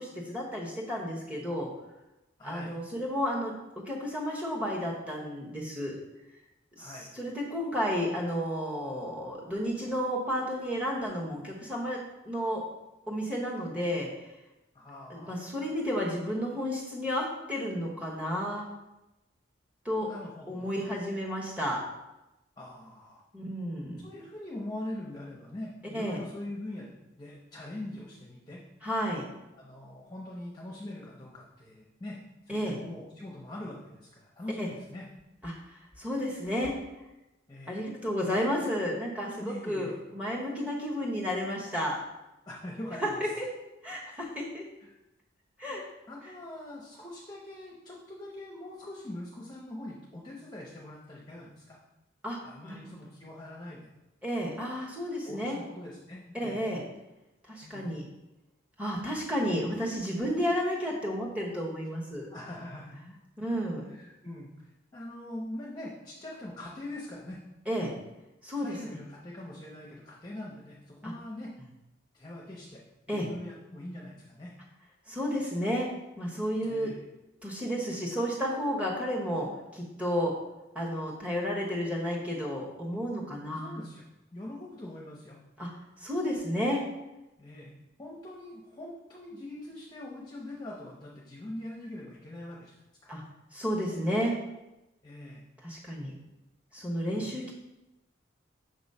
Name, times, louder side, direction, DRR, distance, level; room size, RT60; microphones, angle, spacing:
voice 1, 0.0-1.7 2.4-5.9 6.8-12.0 12.2-12.6 13.1-14.3 15.1-18.7 19.8-20.1 20.5-21.8 23.3-24.0 25.9-26.2 28.8-29.3 32.5-32.8 34.6-34.7 35.4-36.7 37.7-42.0 43.0-43.5 43.8-44.6 45.6-45.8 52.2-52.4 52.6-52.8 54.2-55.6 56.3-56.8 57.5-58.0 58.8-62.3 63.4-63.9 67.7-67.9 68.4-69.0 71.0-71.1 73.1-73.3 75.1-75.9 76.2-76.9 77.4-80.3 80.7-83.8 85.6-85.7 86.0-86.8 93.1-93.2 93.5-94.4 95.6-96.1 96.7-97.5, equal, 5° right, -3 dB, 1.1 m, -32 dB
voice 2, 2.4-2.8 6.8-7.1 14.7-15.5 20.0-20.7 22.6-23.2 24.0-28.6 29.5-32.2 32.4-35.1 37.5-37.9 39.4-40.0 42.5-43.3 44.8-45.0 45.8-51.8 52.4-53.9 55.2-56.7 57.6-58.0 62.3-63.2 63.8-67.4 68.6-71.5 72.1-74.5 76.6-77.0 83.5-84.0 84.3-85.4 87.4-92.7 95.0-95.5 97.1-97.3, left 1 dB, 20° left, -3 dB, 0.7 m, -43 dB
6.3 x 3.1 x 5.3 m, 0.96 s
head